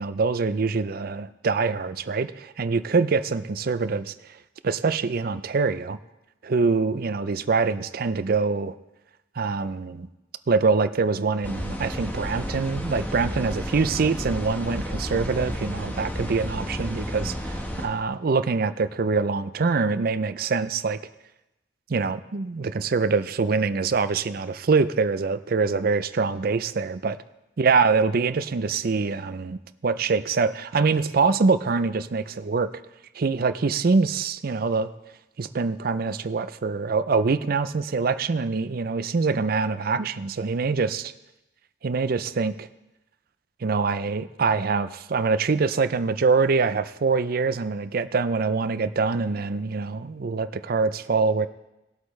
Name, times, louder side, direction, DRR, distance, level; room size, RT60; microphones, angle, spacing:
voice 1, 0.0-4.1 4.6-6.0 6.4-8.7 9.4-10.1 10.5-21.0 21.9-27.2 27.6-32.7 33.1-34.9 35.4-41.1 41.8-42.7 43.6-51.5, right 4 dB, 50° right, 13 dB, 0.5 m, -24 dB
sound 1, 11.4-17.9, equal, 10° left, 1.2 m, -32 dB
19.5 x 8.1 x 3.2 m, 0.97 s
head